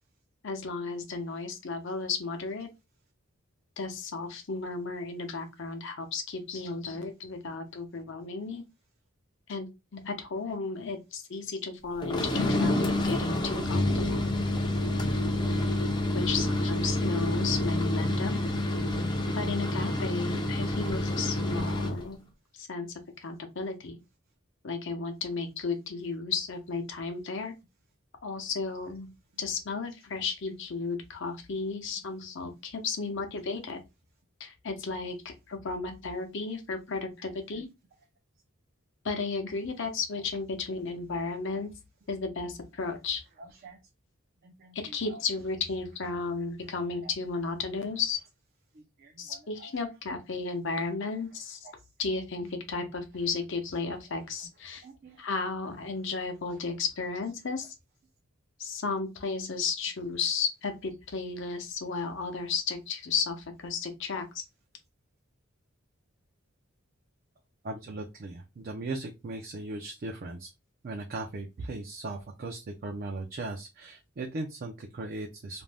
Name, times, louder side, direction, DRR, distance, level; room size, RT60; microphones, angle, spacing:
voice 1, 0.4-2.7 3.8-8.6 9.5-14.2 16.1-18.4 19.4-22.2 22.5-22.9 23.2-24.0 24.6-27.5 28.2-29.1 29.4-33.8 34.4-37.7 39.0-41.7 42.1-43.2 44.7-48.2 49.2-51.6 52.0-54.8 55.2-57.7 58.6-64.4, left 4 dB, 60° left, 0.7 m, -34 dB
sound 1, 12.0-22.0, left 1 dB, 20° left, 0.5 m, -28 dB
voice 2, 37.2-37.6 43.4-43.8 44.4-44.8 45.1-45.2 48.7-49.7 51.6-51.7 54.8-55.3 67.6-70.5 70.8-75.6, right 2 dB, 45° right, 0.4 m, -39 dB
2.6 x 2.1 x 3.3 m
head